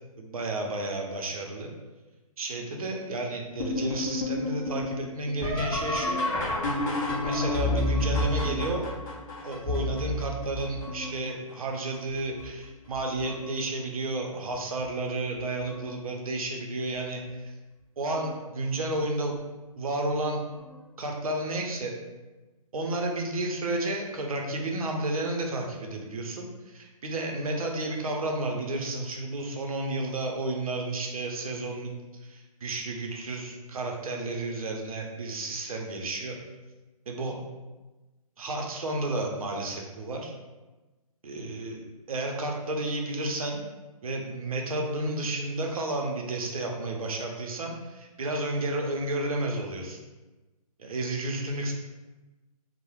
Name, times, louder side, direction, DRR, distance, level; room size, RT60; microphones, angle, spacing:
voice 1, 0.2-1.7 2.4-6.3 7.2-8.9 9.4-17.5 18.0-19.3 19.8-20.4 21.0-21.9 22.7-31.9 32.2-36.4 37.1-37.4 38.4-40.3 41.2-43.6 44.0-50.0 50.8-51.7, right 2 dB, 70° right, 1 dB, 0.6 m, -32 dB
sound 1, 3.6-11.3 11.9-12.5 12.9-13.6 14.8-14.9 15.7-16.0 18.1-18.3 20.6-20.7, left 2 dB, 30° left, 0.6 m, -30 dB
2.2 x 2.0 x 3.0 m, 1.2 s
figure-of-eight pair, 135°, 19 cm